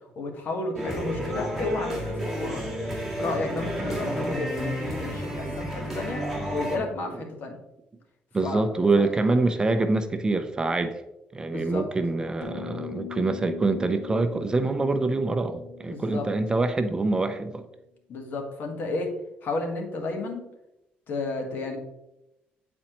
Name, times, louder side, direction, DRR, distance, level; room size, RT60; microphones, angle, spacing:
voice 1, 0.1-2.7 3.2-7.6 8.4-8.6 8.9-9.1 11.5-11.9 15.9-16.3 18.1-19.1 19.4-20.4 21.1-21.8, left 3 dB, 60° left, 3 dB, 1.3 m, -32 dB
sound 1, 0.8-6.8, equal, ahead, 1.7 m, -31 dB
voice 2, 3.8-4.2 5.4-5.6 6.5-7.2 8.3-11.0 11.3-17.6, right 3 dB, 20° right, 8 dB, 0.5 m, -26 dB
sound 2, 12.4-17.1, left 12 dB, 90° left, 0.8 m, -41 dB
8.8 x 4.2 x 3.0 m, 0.90 s
cardioid pair, 115°, 4 cm